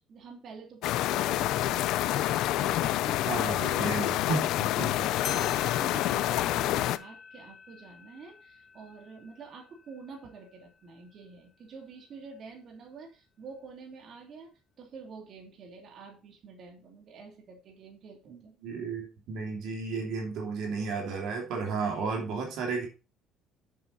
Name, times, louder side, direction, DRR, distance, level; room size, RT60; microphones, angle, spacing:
voice 1, 0.0-3.9 4.7-4.9 5.3-18.5, right 5 dB, 50° right, 1 dB, 2.8 m, -47 dB
sound 1, 0.8-7.0, left 14 dB, 75° left, 0.5 m, -27 dB
voice 2, 3.3-4.9 18.3-22.9, right 4 dB, 70° right, 1 dB, 2.9 m, -33 dB
sound 2, 5.2-10.3, left 6 dB, 30° left, 4.0 m, -45 dB
7.7 x 7.0 x 4.0 m, 0.32 s
cardioid pair, 105°, 0 cm